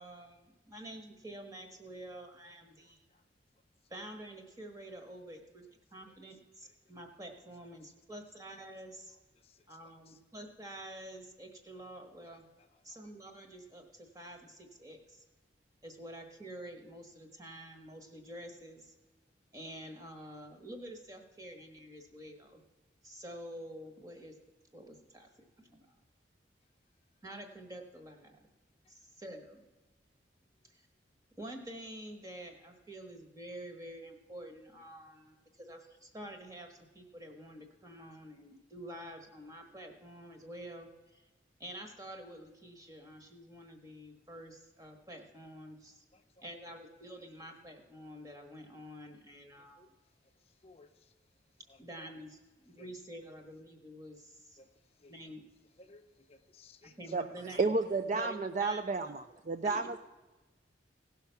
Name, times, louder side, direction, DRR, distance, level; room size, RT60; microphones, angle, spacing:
voice 1, 0.0-3.0 3.9-5.6 5.9-9.2 9.7-12.4 12.8-15.2 15.8-18.9 19.5-22.6 23.0-24.3 24.7-25.3 25.7-26.0 27.2-28.4 28.9-29.6 30.7-30.9 31.4-41.3 41.6-46.0 46.4-49.8 51.8-52.4 52.6-54.6 55.1-55.4 57.0-57.7 58.1-59.1 59.6-60.0, right 1 dB, 20° right, 4 dB, 1.4 m, -48 dB
voice 2, 2.8-3.2 6.6-6.7 9.4-9.6 10.1-10.2 12.2-12.4 46.1-46.5 49.8-49.9 50.6-51.1 51.7-52.1 52.8-52.9 54.6-54.7 55.0-55.1 55.8-57.0, left 2 dB, 30° left, 6 dB, 0.6 m, -60 dB
voice 3, 57.6-60.0, right 3 dB, 40° right, 9 dB, 0.4 m, -31 dB
17.0 x 5.8 x 5.7 m, 1.1 s
head